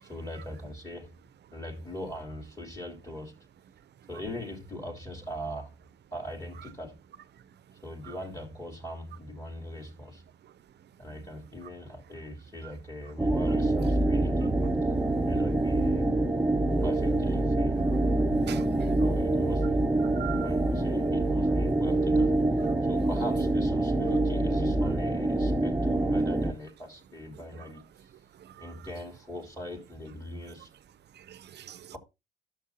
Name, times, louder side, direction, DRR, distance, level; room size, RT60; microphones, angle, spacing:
voice 1, 0.0-1.2 1.5-3.3 4.1-5.7 6.1-7.0 7.8-10.2 11.0-14.6 15.2-16.1 16.8-17.8 18.9-19.8 20.4-22.4 22.8-28.1 28.6-30.7 31.9-32.0, left 1 dB, 15° left, 3.3 m, -40 dB
sound 1, 13.2-26.5, right 2 dB, 10° right, 0.9 m, -26 dB
voice 2, 18.3-19.0 20.1-20.5 28.4-28.7 31.2-31.9, right 11 dB, 60° right, 0.7 m, -42 dB
12.0 x 7.0 x 2.8 m
cardioid pair, 90°, 20 cm